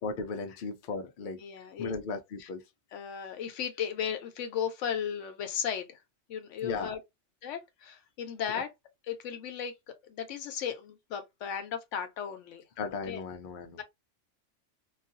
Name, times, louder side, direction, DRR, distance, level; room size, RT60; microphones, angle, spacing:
voice 1, 0.0-1.4 1.8-2.6 6.6-6.9 8.5-8.6 12.8-13.8, left 4 dB, 55° left, 0.6 m, -36 dB
voice 2, 1.4-1.9 2.4-2.5 2.9-6.0 6.3-7.0 7.4-8.7 9.1-12.6 13.1-13.2 13.8-13.9, left 8 dB, 80° left, 1.0 m, -35 dB
2.4 x 2.3 x 2.5 m
omnidirectional pair, 1.2 m